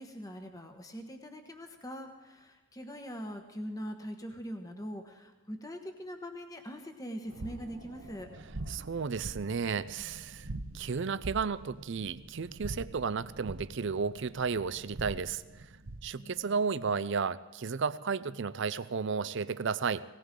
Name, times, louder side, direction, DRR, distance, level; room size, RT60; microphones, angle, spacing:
voice 1, 0.0-8.3 16.2-16.6, equal, 15° left, 5 dB, 1.1 m, -42 dB
sound 1, 7.3-16.2, right 2 dB, 70° right, 1.0 m, -44 dB
voice 2, 8.7-10.5 10.7-15.4 16.0-20.0, right 5 dB, 55° right, 16 dB, 0.5 m, -33 dB
18.5 x 18.5 x 3.8 m, 1.2 s
head